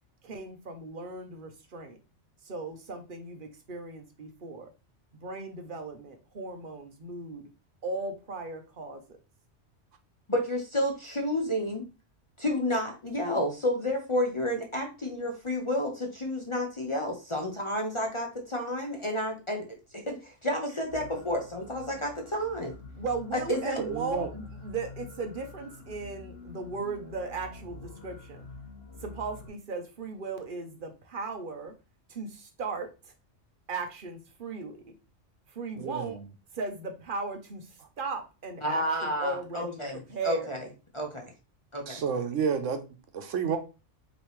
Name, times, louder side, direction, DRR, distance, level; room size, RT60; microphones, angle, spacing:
voice 1, 0.2-2.0 2.4-4.7 5.2-7.5 7.8-9.2 23.0-28.5 29.0-31.7 32.1-33.1 33.7-34.9 35.5-36.2 36.5-40.6, right 3 dB, 50° right, 0.9 m, -37 dB
voice 2, 10.3-11.9 12.4-19.7 19.9-22.8 23.3-23.8 38.6-40.7 40.9-41.3 41.7-42.0, left 1 dB, 30° left, 0.7 m, -30 dB
sound 1, 20.9-29.5, left 3 dB, 55° left, 1.4 m, -47 dB
voice 3, 23.8-24.3 35.8-36.2 41.9-42.8 43.1-43.6, right 6 dB, 85° right, 1.1 m, -30 dB
5.2 x 3.1 x 3.1 m
omnidirectional pair, 1.3 m